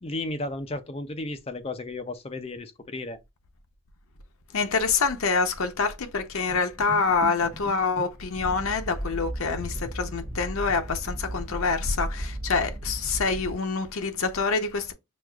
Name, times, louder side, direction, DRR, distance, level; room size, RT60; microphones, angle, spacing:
voice 1, 0.0-3.2, left 2 dB, 25° left, 0.4 m, -34 dB
voice 2, 4.5-14.9, left 4 dB, 75° left, 0.7 m, -26 dB
sound 1, 6.5-8.7 9.5-11.4 11.8-11.9 12.3-12.4, equal, 5° right, 1.1 m, -42 dB
sound 2, 8.3-13.5, right 1 dB, 35° right, 0.9 m, -35 dB
6.1 x 2.4 x 2.3 m
head